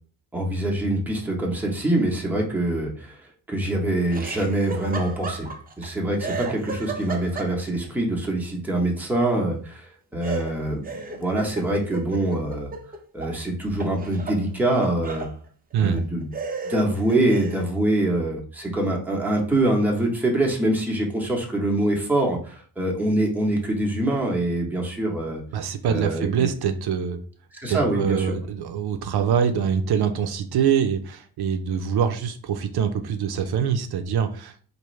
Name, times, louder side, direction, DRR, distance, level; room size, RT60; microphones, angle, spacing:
voice 1, 0.3-5.5 5.8-12.7 13.1-15.3 15.8-16.3 16.6-25.4 25.8-26.5 27.5-28.3, right 1 dB, 5° right, -1 dB, 0.9 m, -24 dB
Laughter, 4.1-5.9 6.2-7.9 10.2-13.3 13.7-15.3 15.9-16.0 16.3-17.7, right 4 dB, 25° right, 0.6 m, -34 dB
voice 2, 25.5-27.2 27.7-34.5, right 7 dB, 75° right, 7 dB, 0.6 m, -24 dB
4.7 x 2.6 x 3.1 m, 0.43 s
cardioid pair, 125°, 39 cm